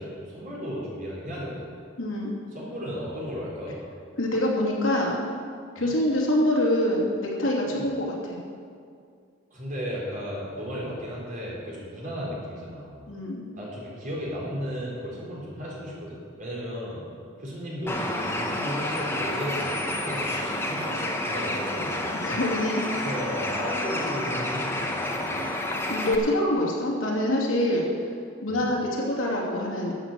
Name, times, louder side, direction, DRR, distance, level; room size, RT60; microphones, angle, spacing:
voice 1, 0.0-1.7 2.5-3.8 5.8-5.9 7.6-7.8 9.5-13.0 13.6-17.0 17.4-21.0 21.3-22.1 22.9-25.4 28.5-28.7, equal, 40° right, -5 dB, 4.0 m, -34 dB
voice 2, 2.0-2.3 4.2-5.2 5.7-8.4 13.1-13.5 22.2-22.8 25.9-27.8 28.4-29.9, left 1 dB, 75° left, -3 dB, 2.8 m, -25 dB
Bird, 17.9-26.2, left 1 dB, 10° left, 1.1 m, -29 dB
12.5 x 7.7 x 7.6 m, 2.3 s
head